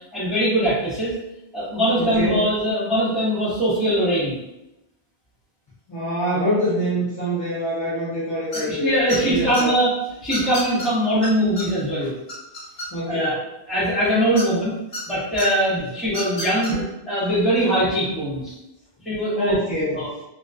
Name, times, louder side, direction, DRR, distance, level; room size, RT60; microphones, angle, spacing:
voice 1, 0.1-1.1 1.5-4.4 8.7-9.9 10.2-12.1 13.1-13.4 13.7-14.7 15.1-16.8 17.1-18.5 19.0-19.6 19.9-20.1, equal, ahead, -11 dB, 0.9 m, -21 dB
voice 2, 2.0-2.4 5.9-9.7 12.9-13.4 15.7-15.8 16.7-16.8 19.3-20.1, equal, 25° left, -11 dB, 0.5 m, -25 dB
sound 1, 8.5-8.8 9.1-9.6 10.3-10.9 11.2-11.3 11.6-11.7 12.0-13.2 14.3-15.0 15.4-15.5 16.1-16.7, left 1 dB, 70° left, 1.3 m, -31 dB
2.3 x 2.3 x 2.4 m, 0.89 s
omnidirectional pair, 1.1 m